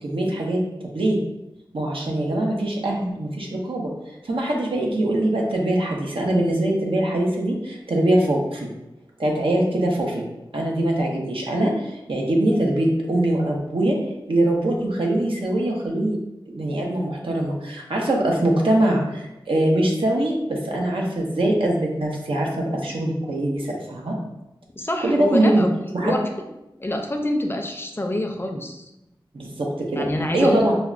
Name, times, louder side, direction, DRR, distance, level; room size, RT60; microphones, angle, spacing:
voice 1, 0.0-1.2 1.7-3.9 4.2-8.7 9.2-10.2 10.5-14.0 14.3-16.2 16.5-24.2 25.0-25.6 25.9-26.2 29.3-30.1 30.3-30.7, right 1 dB, 90° right, -1 dB, 0.7 m, -22 dB
voice 2, 24.8-25.7 26.0-26.2 26.8-28.9 30.0-30.6, left 1 dB, 25° left, 3 dB, 0.4 m, -25 dB
5.6 x 2.1 x 2.4 m, 0.92 s
wide cardioid pair, 65°, 9 cm